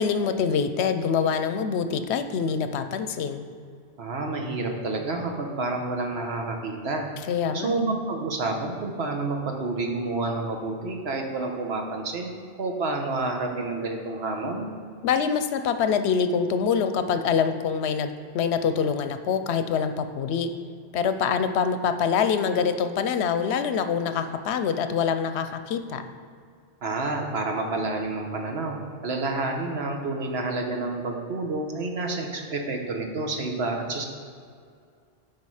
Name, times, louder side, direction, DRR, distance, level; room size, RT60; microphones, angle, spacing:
voice 1, 0.0-3.5 7.3-7.7 15.0-20.5 20.9-26.1, left 6 dB, 80° left, 9 dB, 0.9 m, -25 dB
voice 2, 4.0-7.1 7.5-12.3 12.6-14.7 26.8-28.8 29.0-34.0, right 3 dB, 75° right, 2 dB, 1.3 m, -29 dB
11.0 x 4.8 x 4.8 m, 2.2 s
omnidirectional pair, 1.1 m